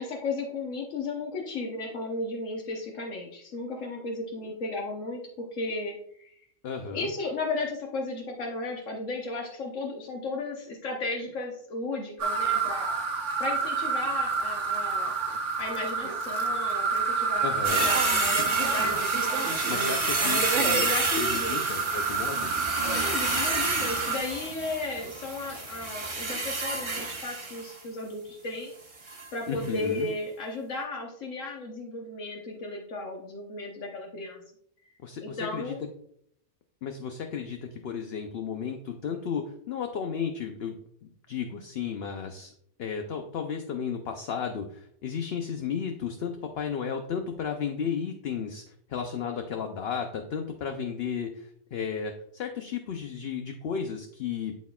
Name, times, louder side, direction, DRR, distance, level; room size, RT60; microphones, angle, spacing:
voice 1, 0.0-6.3 6.8-12.9 13.4-15.1 15.6-19.9 20.8-21.7 22.8-28.7 29.3-34.4 35.2-35.8, left 2 dB, 85° left, 0 dB, 1.4 m, -35 dB
voice 2, 6.6-7.1 15.3-15.4 17.4-17.9 19.7-20.9 21.2-22.5 29.5-30.1 35.0-35.8 36.8-40.8 41.3-42.5 42.8-48.6 48.9-54.5, left 7 dB, 60° left, 5 dB, 0.8 m, -33 dB
sound 1, 12.2-24.2, right 5 dB, 70° right, 1.2 m, -28 dB
sound 2, 17.6-27.8 29.1-29.3 29.6-29.7, right 3 dB, 25° right, 0.9 m, -30 dB
12.0 x 4.3 x 2.3 m, 0.69 s
omnidirectional pair, 1.3 m